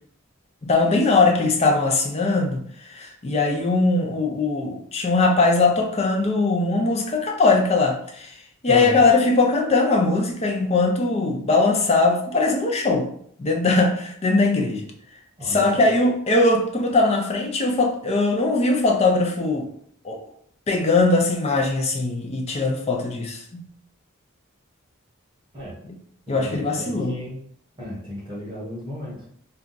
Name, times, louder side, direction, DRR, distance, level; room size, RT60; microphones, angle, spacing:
voice 1, 0.6-8.3 8.6-13.1 13.4-14.9 15.4-19.7 20.0-20.2 20.7-23.7 25.8-25.9 26.3-27.2, left 3 dB, 30° left, 0.4 m, -20 dB
voice 2, 8.7-9.0 15.4-15.9 25.5-25.8 26.4-27.4 27.8-29.2, equal, 20° right, 0.9 m, -34 dB
2.7 x 2.3 x 3.8 m
head